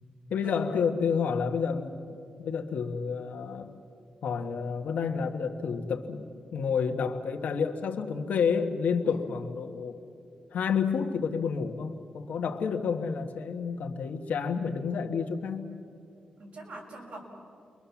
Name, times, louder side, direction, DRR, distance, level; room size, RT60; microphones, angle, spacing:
voice 1, 0.3-3.7 4.2-10.0 10.5-15.7, left 6 dB, 80° left, 4 dB, 1.5 m, -30 dB
voice 2, 16.4-17.2, right 2 dB, 65° right, -1 dB, 6.4 m, -44 dB
29.5 x 23.0 x 7.2 m, 2.5 s
cardioid pair, 95°, 3 cm